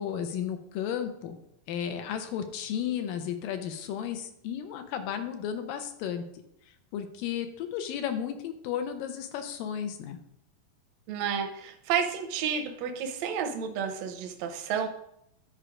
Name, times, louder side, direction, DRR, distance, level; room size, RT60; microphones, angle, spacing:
voice 1, 0.0-1.4 1.7-6.4 6.9-10.2, left 9 dB, 80° left, 7 dB, 2.4 m, -33 dB
voice 2, 11.1-14.9, right 7 dB, 75° right, 5 dB, 1.6 m, -31 dB
10.5 x 4.4 x 5.0 m, 0.77 s
omnidirectional pair, 4.0 m